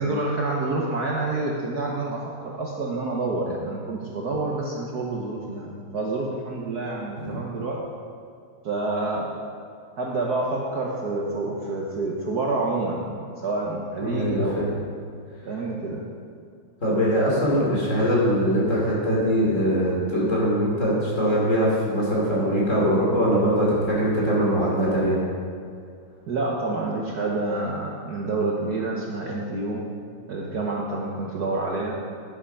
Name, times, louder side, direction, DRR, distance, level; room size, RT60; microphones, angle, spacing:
voice 1, 0.0-7.8 8.6-9.3 10.0-14.7 15.4-16.0 26.3-29.8 30.3-31.9, right 2 dB, 55° right, -2 dB, 1.3 m, -28 dB
voice 2, 14.0-14.7 16.8-25.2, equal, 35° left, -5 dB, 3.1 m, -22 dB
11.0 x 7.6 x 5.6 m, 2.3 s
omnidirectional pair, 2.4 m